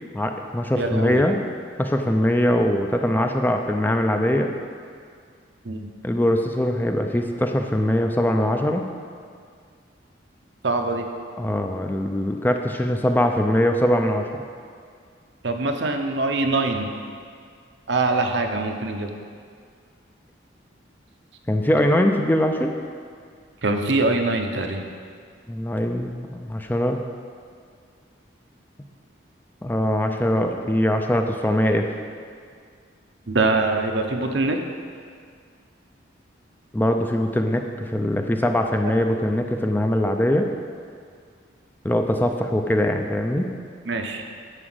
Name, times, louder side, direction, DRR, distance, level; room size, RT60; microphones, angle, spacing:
voice 1, 0.1-1.4 1.8-4.5 6.0-8.9 11.4-14.3 21.5-22.7 25.5-27.0 29.6-31.9 36.7-40.5 41.8-43.5, left 1 dB, 10° left, 4 dB, 0.5 m, -22 dB
voice 2, 0.7-1.2 5.6-5.9 10.6-11.1 15.4-16.9 17.9-19.1 23.6-24.8 33.3-34.6 38.8-38.9 43.8-44.3, right 3 dB, 70° right, 4 dB, 0.9 m, -23 dB
9.9 x 5.0 x 7.8 m, 2.1 s
head